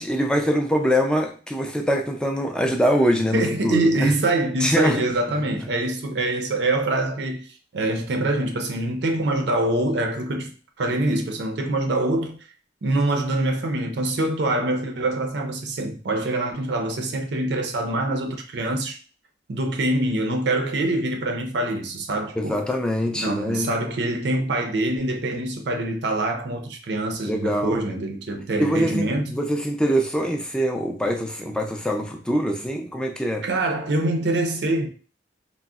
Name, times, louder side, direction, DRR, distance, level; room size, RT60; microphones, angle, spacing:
voice 1, 0.0-4.1 4.6-5.1 22.4-23.7 27.2-27.8 28.6-33.4, equal, 5° left, 0.3 m, -23 dB
voice 2, 3.3-12.4 12.8-19.0 19.5-22.6 23.1-29.4 33.4-34.9, right 2 dB, 65° right, 0.4 m, -25 dB
3.6 x 2.0 x 2.3 m
head